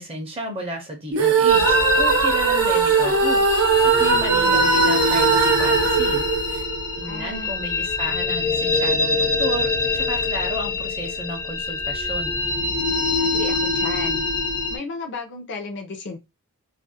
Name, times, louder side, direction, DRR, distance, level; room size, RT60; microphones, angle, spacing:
voice 1, 0.0-3.4 3.8-6.3 7.0-12.3, right 1 dB, 25° right, 0.5 m, -32 dB
sound 1, 1.1-7.3, right 5 dB, 75° right, 0.5 m, -19 dB
sound 2, 1.5-14.8, left 3 dB, 75° left, 0.9 m, -24 dB
voice 2, 7.0-7.5 13.2-14.2 14.7-16.2, left 4 dB, 55° left, 0.6 m, -33 dB
2.4 x 2.0 x 2.6 m
head